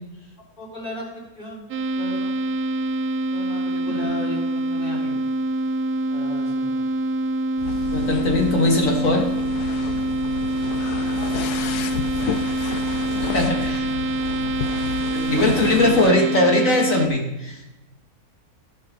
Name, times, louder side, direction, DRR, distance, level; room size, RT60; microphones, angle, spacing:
voice 1, 0.6-1.1 1.4-1.6 1.9-2.3 3.3-5.2 6.1-6.8 11.2-11.7 15.0-16.1, left 1 dB, 30° left, -5 dB, 4.1 m, -34 dB
sound 1, 1.7-17.1, right 2 dB, 75° right, 1.2 m, -25 dB
sound 2, 7.6-16.1, left 8 dB, 85° left, 1.2 m, -31 dB
voice 2, 7.9-9.3 13.2-13.9 15.3-17.6, left 2 dB, 55° left, 0 dB, 2.3 m, -20 dB
15.0 x 5.8 x 5.3 m, 1.0 s
omnidirectional pair, 1.6 m